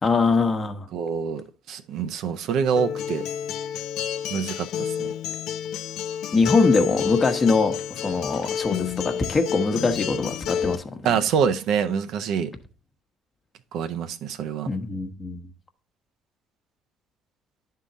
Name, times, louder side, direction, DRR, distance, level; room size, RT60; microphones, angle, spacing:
voice 1, 0.0-0.9 6.3-11.1 14.7-15.4, left 4 dB, 30° left, 0.9 m, -23 dB
voice 2, 0.9-3.2 4.3-5.1 11.0-12.5 13.7-14.7, right 7 dB, 70° right, 0.5 m, -26 dB
Acoustic guitar, 2.8-10.8, left 8 dB, 70° left, 0.4 m, -29 dB
10.0 x 3.8 x 3.9 m
cardioid pair, 90°, 0 cm